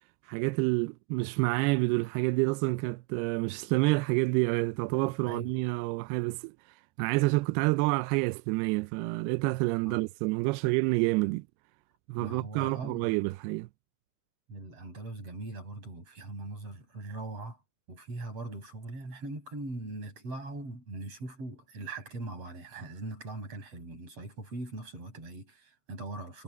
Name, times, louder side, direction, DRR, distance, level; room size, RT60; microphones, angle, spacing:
voice 1, 0.3-6.5 7.0-11.4 12.1-13.7, right 23 dB, 85° right, 2.3 m, -28 dB
voice 2, 12.2-13.1 14.5-17.6 17.9-26.4, right 2 dB, 35° right, 8.0 m, -41 dB
omnidirectional pair, 5.1 m